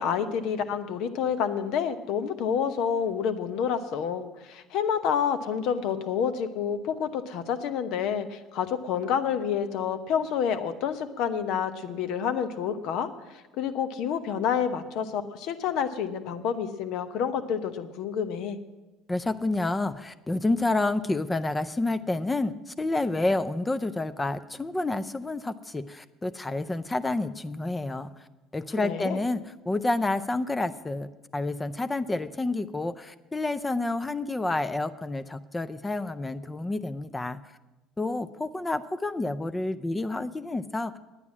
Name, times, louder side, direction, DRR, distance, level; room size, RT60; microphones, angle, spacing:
voice 1, 0.0-18.6 28.8-29.2, left 7 dB, 70° left, 10 dB, 0.9 m, -29 dB
voice 2, 19.1-28.1 28.5-37.4 38.0-41.0, left 2 dB, 15° left, 12 dB, 0.5 m, -29 dB
9.9 x 9.4 x 7.2 m, 1.1 s
supercardioid pair, 75°, 0 cm